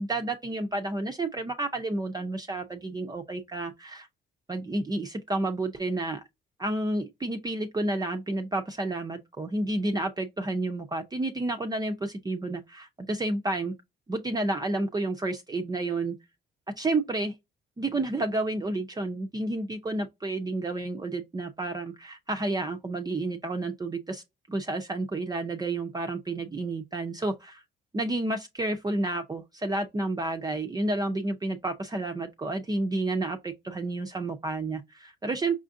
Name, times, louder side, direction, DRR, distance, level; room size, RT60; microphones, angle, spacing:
voice 1, 0.0-4.1 4.5-6.2 6.6-13.7 14.1-16.2 16.8-17.3 17.8-24.2 24.5-27.6 27.9-35.6, right 2 dB, 20° right, 0.5 m, -30 dB
5.5 x 2.4 x 2.5 m
cardioid pair, 90°, 20 cm